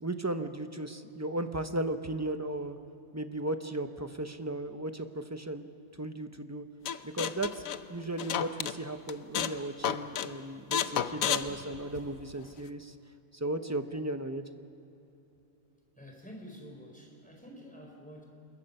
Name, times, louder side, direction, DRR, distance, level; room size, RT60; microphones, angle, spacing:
voice 1, 0.0-2.8 3.1-5.6 6.0-6.6 7.0-7.6 7.9-12.9 13.3-14.4, right 1 dB, 15° right, 8 dB, 0.6 m, -35 dB
sound 1, 6.9-8.8 9.1-9.6 9.8-10.3 10.7-12.3, left 9 dB, 75° left, 1.2 m, -31 dB
voice 2, 16.0-18.2, equal, 5° left, 0 dB, 4.3 m, -48 dB
27.0 x 21.5 x 5.5 m, 3.0 s
omnidirectional pair, 1.4 m